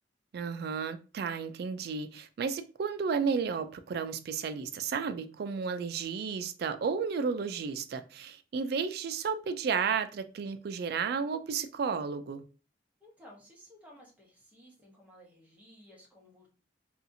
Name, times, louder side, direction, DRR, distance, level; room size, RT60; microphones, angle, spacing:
voice 1, 0.3-12.4, right 5 dB, 60° right, 0.3 m, -33 dB
voice 2, 13.0-16.5, equal, 10° right, 0.8 m, -56 dB
2.7 x 2.4 x 2.6 m
head